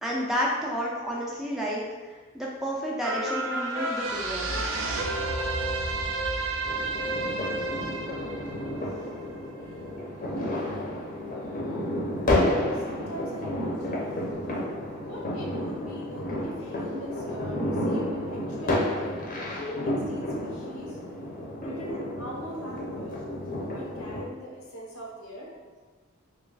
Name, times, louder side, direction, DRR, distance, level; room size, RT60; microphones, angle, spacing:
voice 1, 0.0-1.9 2.3-4.6, equal, ahead, -4 dB, 0.4 m, -30 dB
sound 1, 3.0-9.6 10.1-10.2, right 2 dB, 65° right, 0.4 m, -31 dB
sound 2, 6.6-24.2, left 1 dB, 40° left, 0.6 m, -31 dB
voice 2, 12.7-14.4 14.9-19.2 19.5-21.3 21.6-23.1 23.7-25.6, equal, 85° left, -2 dB, 0.8 m, -41 dB
3.0 x 2.4 x 3.8 m, 1.3 s
head